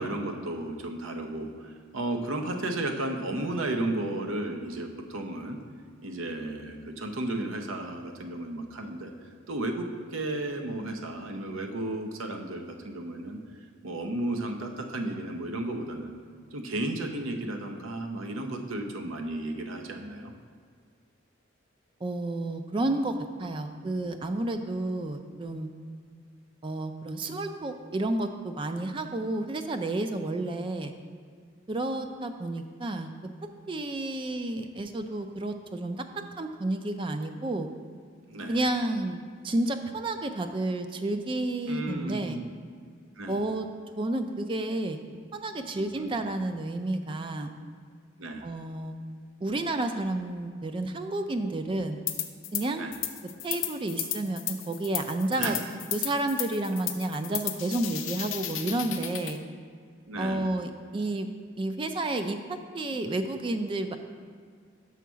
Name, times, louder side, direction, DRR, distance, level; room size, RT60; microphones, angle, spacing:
voice 1, 0.0-5.6 6.0-9.1 9.5-13.4 13.8-16.1 16.5-20.3 38.3-38.6 41.7-42.4 43.2-43.4 45.7-46.3 48.2-48.4 52.8-52.9 55.4-55.6 60.1-60.5, right 1 dB, 80° right, 4 dB, 0.7 m, -33 dB
voice 2, 22.0-25.7 26.6-30.9 31.7-33.1 33.7-36.0 36.4-37.7 38.5-42.4 43.3-43.7 44.0-45.0 45.3-47.5 48.4-49.0 49.4-52.0 52.5-52.8 53.4-55.6 55.9-59.4 60.2-61.3 61.6-63.9, right 2 dB, 25° right, 7 dB, 0.3 m, -31 dB
sound 1, 52.1-52.6 52.9-59.4, left 12 dB, 70° left, 0.5 m, -34 dB
5.7 x 4.6 x 6.1 m, 2.1 s
head